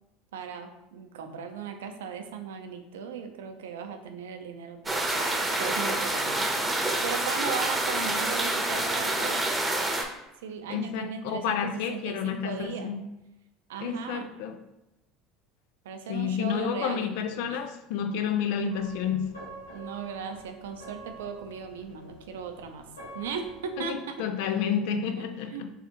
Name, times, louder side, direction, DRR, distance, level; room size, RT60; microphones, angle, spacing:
voice 1, 0.3-9.6 10.4-12.9 13.7-14.3 15.8-17.1 17.4-17.6 19.7-22.8 23.1-24.2 25.2-25.6, right 6 dB, 75° right, 6 dB, 0.5 m, -37 dB
sound 1, 4.9-10.0, right 2 dB, 15° right, 0.9 m, -27 dB
voice 2, 10.7-13.1 13.8-14.6 16.1-19.3 23.8-25.7, left 7 dB, 65° left, 8 dB, 0.4 m, -30 dB
sound 2, 18.7-23.9, right 2 dB, 90° left, 1.0 m, -47 dB
4.6 x 3.4 x 2.9 m, 0.93 s
hypercardioid pair, 70°, 0 cm